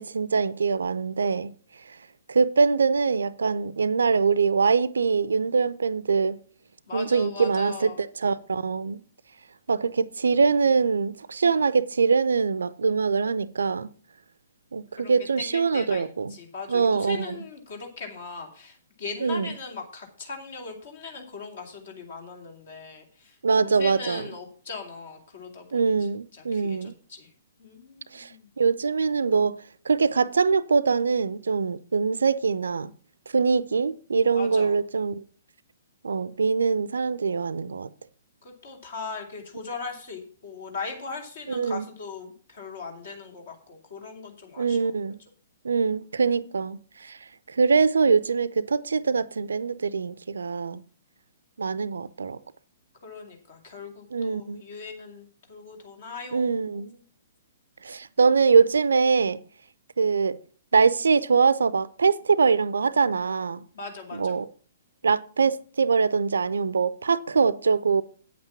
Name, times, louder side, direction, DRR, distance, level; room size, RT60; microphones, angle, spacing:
voice 1, 0.0-1.5 2.3-6.4 6.9-9.0 9.7-13.9 14.7-16.3 16.7-17.4 19.2-19.5 23.4-24.2 25.7-26.9 28.1-28.3 28.6-29.6 29.9-32.9 33.3-35.2 36.0-37.9 41.5-41.9 44.6-45.2 45.6-47.2 47.5-50.8 51.6-52.4 54.1-54.6 56.3-56.9 57.8-59.4 60.0-60.4 60.7-63.6 64.1-64.5 65.0-68.0, right 5 dB, 65° right, 0.5 m, -23 dB
voice 2, 6.9-8.0 15.0-16.0 16.3-25.9 26.3-27.3 27.6-28.5 34.3-34.7 38.4-44.9 53.0-57.0 63.7-64.3, left 4 dB, 55° left, 2.8 m, -39 dB
8.8 x 8.4 x 5.8 m
figure-of-eight pair, 115°, 0 cm